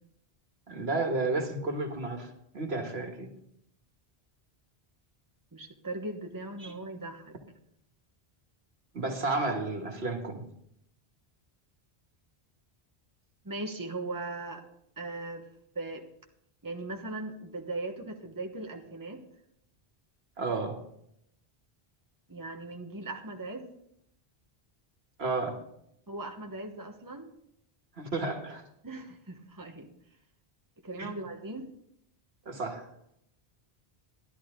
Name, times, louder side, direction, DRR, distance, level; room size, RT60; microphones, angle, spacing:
voice 1, 0.7-3.3 6.6-6.7 8.9-10.4 20.4-20.8 25.2-25.6 28.0-28.6 31.0-31.2 32.5-32.9, right 3 dB, 80° right, 4 dB, 1.8 m, -32 dB
voice 2, 5.5-7.3 13.4-14.6 15.0-15.4 15.7-16.0 16.6-19.2 22.3-23.7 26.1-27.3 28.8-29.9 30.8-31.6, right 2 dB, 20° right, 3 dB, 1.2 m, -39 dB
13.0 x 11.0 x 3.8 m, 0.74 s
omnidirectional pair, 1.0 m